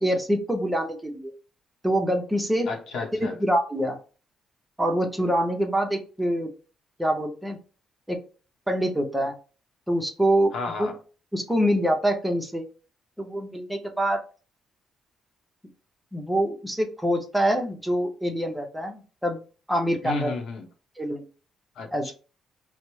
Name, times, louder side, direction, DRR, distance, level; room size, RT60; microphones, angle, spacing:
voice 1, 0.0-1.3 1.8-2.7 3.2-4.0 4.8-6.5 7.0-7.6 8.1-8.2 8.7-9.3 9.9-10.5 10.8-10.9 11.3-12.6 13.2-14.2 16.1-19.4 19.7-20.3 21.0-21.3 21.9-22.1, equal, 5° right, 0.7 m, -25 dB
voice 2, 2.7-3.4 10.5-10.9 20.0-20.7 21.8-22.1, left 3 dB, 75° left, 0.7 m, -32 dB
4.2 x 2.0 x 3.0 m
cardioid pair, 90°, 0 cm